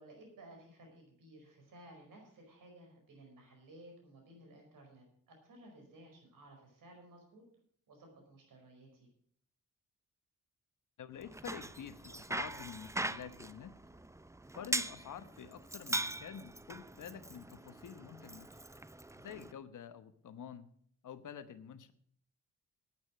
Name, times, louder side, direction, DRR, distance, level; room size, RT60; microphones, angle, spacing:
voice 1, 0.0-7.4 7.9-9.1 19.2-19.4, right 1 dB, 70° right, 2 dB, 5.1 m, -57 dB
voice 2, 11.0-13.8 14.5-18.5 19.2-20.7 21.0-21.9, left 8 dB, 65° left, 12 dB, 1.1 m, -48 dB
Bicycle, 11.2-19.5, right 2 dB, 10° right, 0.7 m, -41 dB
9.7 x 8.9 x 7.5 m, 0.64 s
supercardioid pair, 50°, 34 cm